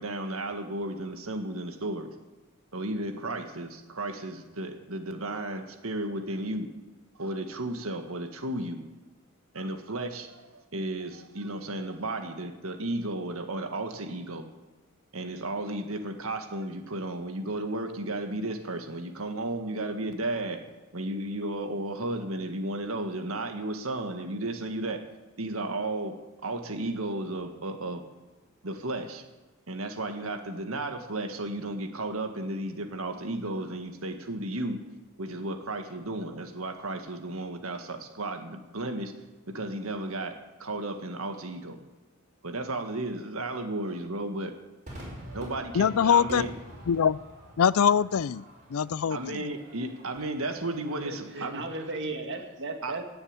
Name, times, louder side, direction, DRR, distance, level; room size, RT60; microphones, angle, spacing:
voice 1, 0.0-2.1 2.7-6.7 7.2-8.8 9.5-14.5 15.1-20.6 20.9-25.0 25.4-26.1 26.4-28.0 28.6-29.2 29.7-34.8 35.2-39.1 39.5-40.4 40.6-41.8 42.4-44.5 45.3-46.5 49.1-51.6 52.8-52.9, right 2 dB, 85° right, 6 dB, 1.7 m, -34 dB
Crowd / Fireworks, 44.9-51.4, equal, 40° right, 6.2 m, -46 dB
voice 2, 45.7-46.4 46.9-47.2 47.6-48.4 48.7-49.4, left 7 dB, 85° left, 20 dB, 0.4 m, -23 dB
voice 3, 50.9-53.0, right 2 dB, 60° right, 4 dB, 2.1 m, -36 dB
18.0 x 7.0 x 8.9 m, 1.2 s
head